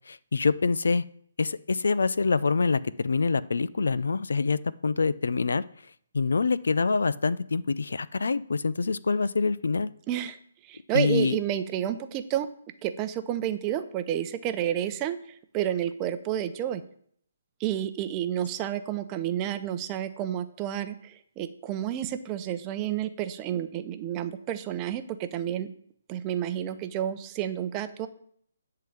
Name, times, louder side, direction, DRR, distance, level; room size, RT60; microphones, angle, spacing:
voice 1, 0.1-1.0 1.4-5.6 6.1-9.9 10.9-11.3, left 4 dB, 80° left, 18 dB, 0.5 m, -25 dB
voice 2, 10.1-10.4 10.6-12.5 12.8-15.2 15.5-16.8 17.6-25.7 26.1-28.1, right 11 dB, 20° right, 9 dB, 0.6 m, -30 dB
10.5 x 3.8 x 7.2 m, 0.63 s
hypercardioid pair, 160°, 0 cm